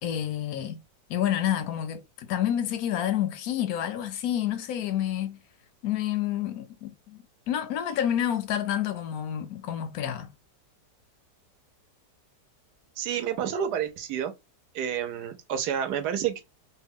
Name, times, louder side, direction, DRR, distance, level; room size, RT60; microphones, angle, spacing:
voice 1, 0.0-0.8 1.1-5.4 5.8-10.3, left 10 dB, 70° left, 0.9 m, -29 dB
voice 2, 13.0-14.3 14.7-16.4, right 9 dB, 70° right, 1.2 m, -29 dB
3.2 x 2.2 x 3.5 m
omnidirectional pair, 1.9 m